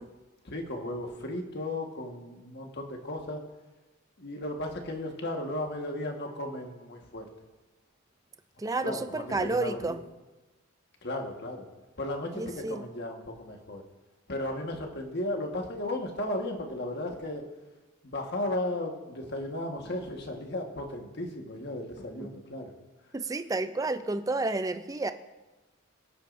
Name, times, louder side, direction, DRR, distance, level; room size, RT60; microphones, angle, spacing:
voice 1, 0.4-3.4 4.2-7.3 8.8-10.0 11.0-11.7 12.0-13.8 14.3-17.4 18.0-22.7, left 1 dB, 50° left, 2 dB, 1.4 m, -35 dB
voice 2, 8.6-10.0 12.3-12.8 22.2-22.3 23.1-25.1, right 3 dB, 15° right, 10 dB, 0.4 m, -30 dB
23.5 x 8.5 x 2.6 m, 1.1 s
head